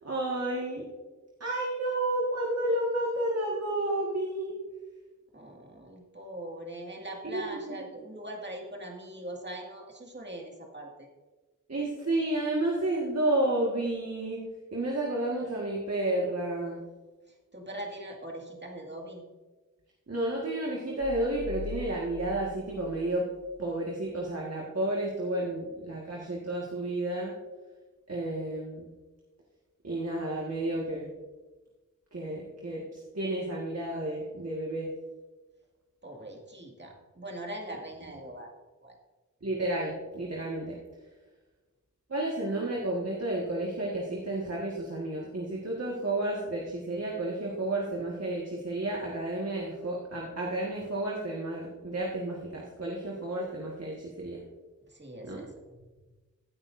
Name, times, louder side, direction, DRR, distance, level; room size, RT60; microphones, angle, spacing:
voice 1, 0.0-0.8 1.4-4.6 7.2-7.8 11.7-14.4 14.7-16.8 20.1-23.3 23.6-27.3 28.1-28.9 29.8-31.1 32.1-32.8 33.1-34.9 39.4-40.8 42.1-54.4 55.3-55.4, right 1 dB, 50° right, -3 dB, 1.8 m, -31 dB
voice 2, 5.3-11.1 17.5-19.2 36.0-38.5 38.8-38.9 54.9-55.5, right 1 dB, 35° right, 0 dB, 2.1 m, -41 dB
sound 1, 21.0-23.9, left 3 dB, 55° left, 1.0 m, -42 dB
16.0 x 9.0 x 2.7 m, 1.2 s
wide cardioid pair, 60°, 32 cm